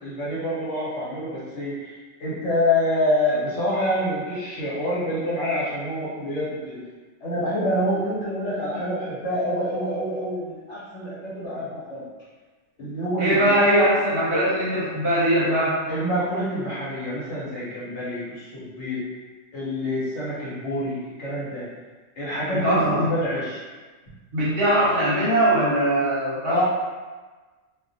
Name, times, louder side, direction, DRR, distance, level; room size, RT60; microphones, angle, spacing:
voice 1, 0.0-6.8 7.2-12.0 12.8-13.6 14.3-14.4 15.9-19.0 19.5-21.7 22.2-23.6 26.5-26.6, left 1 dB, 65° left, -9 dB, 1.2 m, -27 dB
voice 2, 13.2-15.8 22.5-23.1 24.3-26.6, right 1 dB, 55° right, -8 dB, 0.9 m, -21 dB
2.4 x 2.3 x 2.6 m, 1.3 s
omnidirectional pair, 1.3 m